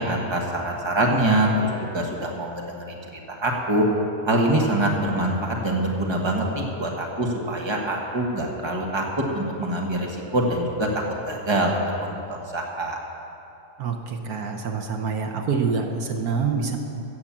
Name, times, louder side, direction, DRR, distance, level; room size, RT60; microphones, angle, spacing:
voice 1, 0.0-3.0 3.4-3.8 4.3-9.0 9.3-10.9 11.3-13.0, right 1 dB, 20° right, -1 dB, 1.5 m, -24 dB
voice 2, 13.8-16.8, right 5 dB, 70° right, 3 dB, 1.4 m, -26 dB
15.0 x 8.0 x 7.3 m, 2.8 s
omnidirectional pair, 1.6 m